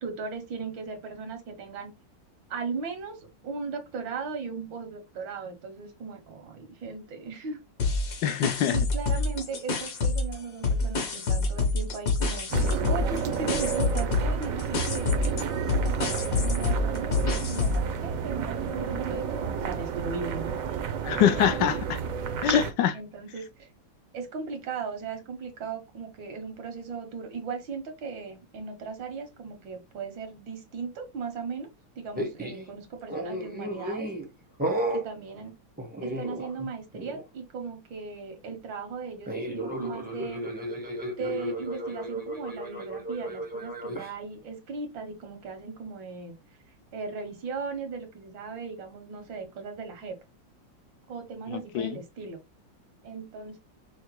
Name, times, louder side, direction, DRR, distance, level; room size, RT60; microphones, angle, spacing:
voice 1, 0.0-1.9 2.5-7.6 8.7-20.5 22.9-23.7 24.1-31.7 32.0-34.1 34.9-35.6 36.0-40.5 41.2-46.3 46.9-50.2 51.1-52.4 53.0-53.6, right 5 dB, 80° right, 1.8 m, -37 dB
sound 1, 7.8-10.4 10.6-17.9, left 3 dB, 55° left, 1.3 m, -27 dB
voice 2, 8.2-8.8 21.0-22.0 22.4-23.0 51.7-52.0, left 9 dB, 75° left, 1.2 m, -24 dB
sound 2, 12.5-22.7, right 6 dB, 65° right, 0.9 m, -31 dB
sound 3, 32.1-32.7 33.1-34.3 34.6-35.1 35.8-36.7 36.9-37.2 39.3-44.1, right 1 dB, 10° right, 0.5 m, -33 dB
5.6 x 2.1 x 3.1 m
omnidirectional pair, 2.0 m